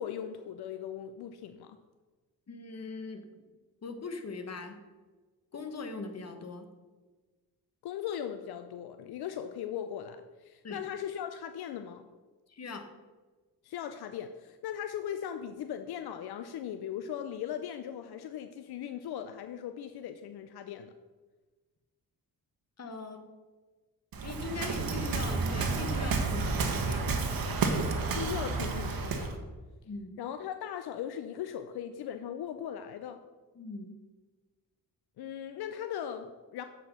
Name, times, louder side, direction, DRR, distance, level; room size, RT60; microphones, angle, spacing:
voice 1, 0.0-1.8 7.8-12.1 13.6-20.9 28.2-29.4 30.2-33.2 35.2-36.6, left 9 dB, 80° left, 8 dB, 0.5 m, -38 dB
voice 2, 2.5-3.4 3.8-4.8 5.5-6.7 10.6-10.8 12.5-12.8 22.8-23.3 24.2-27.1 29.8-30.2 33.5-33.9, left 3 dB, 40° left, 7 dB, 1.2 m, -40 dB
Waves surf, 24.1-29.4, right 4 dB, 65° right, 1.2 m, -31 dB
7.8 x 4.6 x 5.6 m, 1.3 s
cardioid pair, 70°, 38 cm